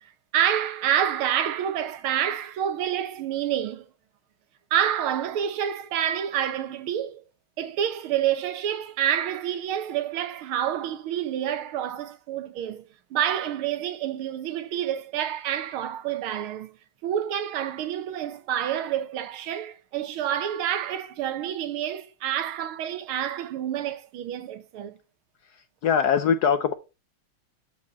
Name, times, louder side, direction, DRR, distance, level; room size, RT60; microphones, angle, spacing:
voice 1, 0.3-3.9 4.7-7.2 7.6-12.8 13.1-16.7 17.0-24.9, right 10 dB, 90° right, 1.8 m, -28 dB
voice 2, 25.5-26.7, left 7 dB, 70° left, 0.9 m, -23 dB
12.0 x 4.3 x 4.0 m
omnidirectional pair, 2.3 m